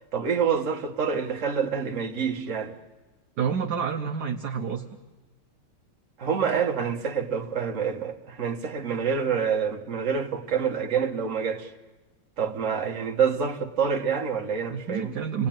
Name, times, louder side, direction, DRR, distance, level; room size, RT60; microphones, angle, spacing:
voice 1, 0.1-2.7 6.2-11.7 12.4-15.1, right 6 dB, 40° right, 1.6 m, -27 dB
voice 2, 3.4-4.8 14.7-15.5, right 7 dB, 55° right, 1.4 m, -28 dB
29.0 x 20.0 x 9.1 m
omnidirectional pair, 2.4 m